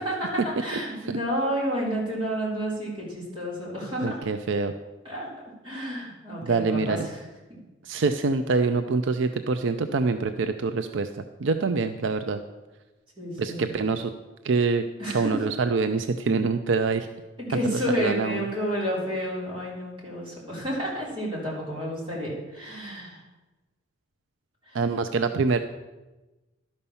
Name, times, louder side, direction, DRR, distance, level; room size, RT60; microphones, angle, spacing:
voice 1, 0.0-4.2 5.0-7.0 13.2-13.7 15.0-15.3 17.4-23.2, equal, 25° right, -6 dB, 3.9 m, -30 dB
voice 2, 4.0-4.7 6.4-7.1 7.8-11.1 11.4-12.4 13.4-14.1 14.4-14.9 15.1-17.1 17.6-18.5 24.7-25.6, right 4 dB, 70° right, 8 dB, 0.5 m, -25 dB
11.5 x 5.5 x 7.1 m, 1.1 s
head